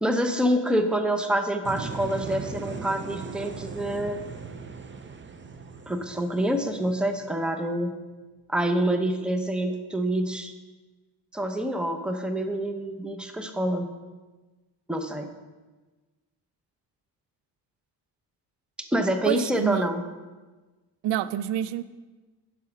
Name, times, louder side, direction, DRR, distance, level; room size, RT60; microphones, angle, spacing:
voice 1, 0.0-4.2 5.9-7.9 8.5-10.5 11.3-13.9 14.9-15.3 18.9-20.0, right 1 dB, ahead, 6 dB, 0.9 m, -26 dB
sound 1, 1.6-7.5, right 5 dB, 30° right, 0.7 m, -38 dB
voice 2, 19.3-19.9 21.0-21.8, right 11 dB, 80° right, 15 dB, 0.5 m, -27 dB
9.3 x 6.1 x 5.9 m, 1.3 s
cardioid pair, 85°, 42 cm